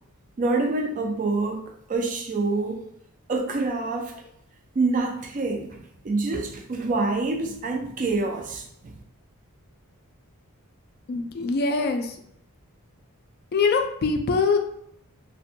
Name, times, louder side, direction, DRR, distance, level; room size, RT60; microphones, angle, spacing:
voice 1, 0.4-2.9 3.3-4.1 4.7-9.0, right 3 dB, 35° right, 3 dB, 0.4 m, -26 dB
voice 2, 11.1-12.2 13.5-14.6, left 4 dB, 45° left, 4 dB, 0.3 m, -23 dB
2.5 x 2.2 x 2.7 m, 0.71 s
head